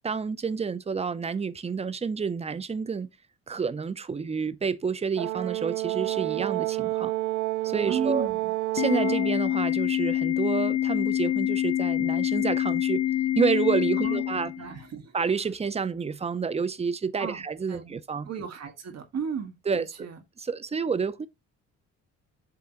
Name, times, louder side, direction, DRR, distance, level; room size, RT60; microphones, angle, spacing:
voice 1, 0.0-3.1 3.5-7.1 7.6-8.3 8.7-13.0 13.3-14.5 15.1-18.3 19.7-19.8 20.4-21.3, right 5 dB, 20° right, 0.6 m, -29 dB
Brass instrument, 5.2-9.4, right 17 dB, 75° right, 0.5 m, -29 dB
voice 2, 7.9-8.5 14.0-15.2 17.2-17.4 17.7-18.0 18.3-20.2, right 6 dB, 55° right, 1.7 m, -35 dB
Organ, 8.8-14.8, left 13 dB, 60° left, 0.6 m, -26 dB
7.7 x 3.4 x 4.4 m
cardioid pair, 90°, 30 cm